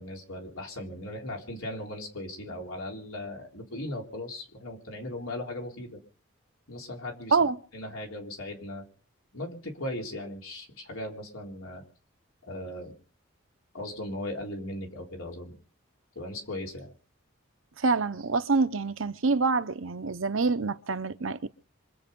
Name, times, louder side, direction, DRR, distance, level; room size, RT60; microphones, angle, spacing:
voice 1, 0.0-6.0 6.7-7.4 7.7-8.9 9.3-11.8 12.4-12.9 13.7-15.6 16.2-16.9, left 1 dB, 85° left, 3.8 m, -38 dB
voice 2, 17.8-21.5, right 4 dB, 70° right, 0.8 m, -26 dB
26.0 x 8.7 x 5.4 m
head